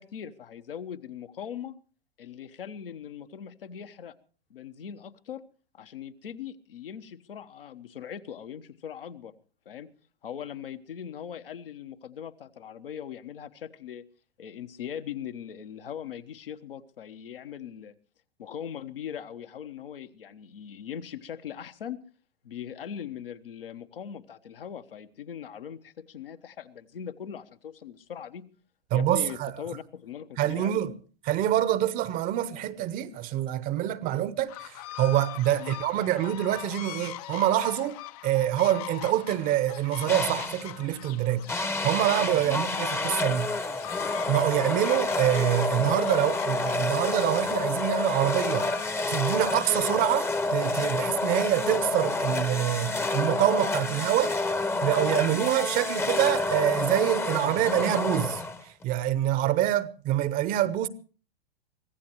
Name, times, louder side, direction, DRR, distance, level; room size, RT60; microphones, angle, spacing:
voice 1, 0.0-1.7 2.2-4.1 4.5-5.4 5.7-9.3 9.6-9.9 10.2-14.0 14.4-17.9 18.4-22.0 22.4-28.5 28.9-30.9 35.6-35.7 42.4-42.6, left 8 dB, 65° left, 1.2 m, -40 dB
voice 2, 28.9-29.5 30.4-30.9 31.2-38.0 38.2-43.5 44.3-54.3 54.8-60.9, right 13 dB, 30° right, 0.9 m, -26 dB
sound 1, 34.5-50.1, left 15 dB, 40° left, 0.7 m, -42 dB
sound 2, 40.1-40.7 41.5-58.8, left 2 dB, 10° left, 0.9 m, -29 dB
24.0 x 16.0 x 3.0 m
figure-of-eight pair, 105°, 30 cm